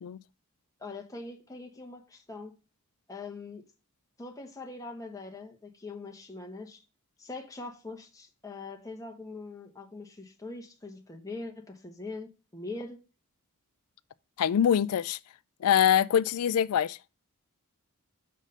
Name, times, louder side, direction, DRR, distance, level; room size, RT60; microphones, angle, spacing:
voice 1, 0.8-2.5 3.1-3.6 4.2-6.8 7.2-13.0, left 3 dB, 15° left, 1.2 m, -42 dB
voice 2, 14.4-15.2 15.6-17.0, left 9 dB, 80° left, 0.4 m, -24 dB
6.5 x 5.0 x 5.4 m
head